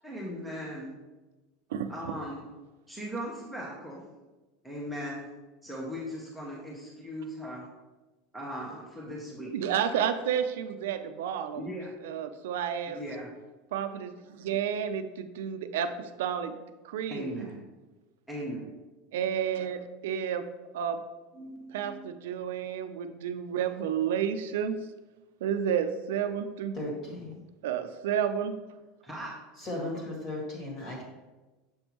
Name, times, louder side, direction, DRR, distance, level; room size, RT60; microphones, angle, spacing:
voice 1, 0.0-0.9 1.9-2.4 2.9-4.0 4.6-5.3 5.6-7.6 8.3-9.5 11.6-11.9 12.9-13.3 17.1-17.6 18.3-18.7 21.3-22.0 29.0-29.3, equal, ahead, -4 dB, 0.8 m, -38 dB
voice 2, 1.7-2.1 9.5-11.7 12.0-13.0 13.7-16.5 16.8-17.5 19.1-20.4 20.7-21.0 21.7-24.8 25.4-26.8 27.6-28.6, right 8 dB, 85° right, 9 dB, 0.5 m, -31 dB
voice 3, 26.7-27.4 29.6-31.0, left 1 dB, 25° left, -2 dB, 1.7 m, -36 dB
6.9 x 5.2 x 3.0 m, 1.2 s
supercardioid pair, 175°, 0 cm